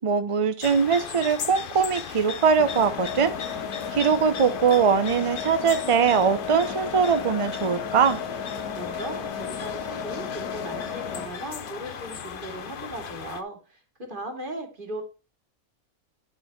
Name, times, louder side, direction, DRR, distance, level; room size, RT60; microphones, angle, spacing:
voice 1, 0.0-3.3 3.9-8.2, right 6 dB, 60° right, 11 dB, 0.3 m, -22 dB
sound 1, 0.6-13.4, left 7 dB, 50° left, 0.7 m, -37 dB
sound 2, 2.6-11.3, left 6 dB, 85° left, 1.5 m, -34 dB
voice 2, 8.8-15.0, right 1 dB, 35° right, 3 dB, 2.3 m, -37 dB
10.5 x 5.5 x 4.6 m, 0.30 s
omnidirectional pair, 1.6 m